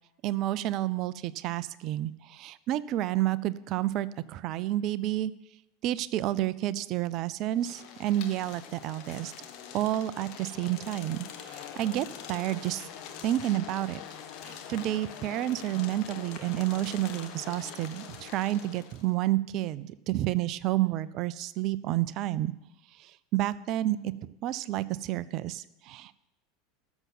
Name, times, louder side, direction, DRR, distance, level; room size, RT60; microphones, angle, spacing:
voice 1, 0.2-5.3 5.8-9.3 9.7-12.9 13.2-14.0 14.4-22.5 23.0-26.1, right 14 dB, 45° right, 18 dB, 0.5 m, -30 dB
sound 1, 7.5-19.1, left 8 dB, 50° left, 1.4 m, -44 dB
13.5 x 7.2 x 7.3 m, 0.90 s
figure-of-eight pair, 80°, 0 cm